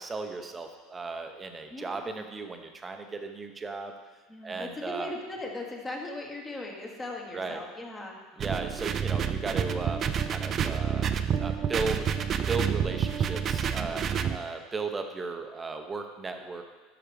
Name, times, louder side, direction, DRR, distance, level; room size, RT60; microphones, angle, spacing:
voice 1, 0.0-3.9 4.4-5.1 7.3-7.6 8.4-16.6, right 3 dB, 20° right, 5 dB, 0.8 m, -36 dB
voice 2, 1.7-2.2 4.3-8.2 13.8-14.0, left 2 dB, 20° left, 0 dB, 1.4 m, -39 dB
sound 1, 8.4-14.4, right 8 dB, 35° right, 0.4 m, -29 dB
12.0 x 5.9 x 3.5 m, 1.3 s
supercardioid pair, 130°, 0 cm